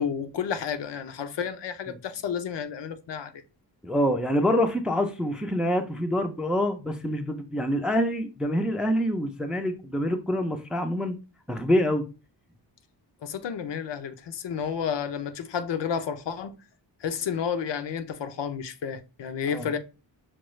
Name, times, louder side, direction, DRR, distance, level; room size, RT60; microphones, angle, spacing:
voice 1, 0.0-3.3 13.2-16.5 17.0-19.8, left 7 dB, 75° left, 0.7 m, -31 dB
voice 2, 3.8-11.2 11.5-12.0 19.5-19.7, equal, ahead, 0.3 m, -26 dB
5.9 x 2.3 x 3.0 m
wide cardioid pair, 170°, 43 cm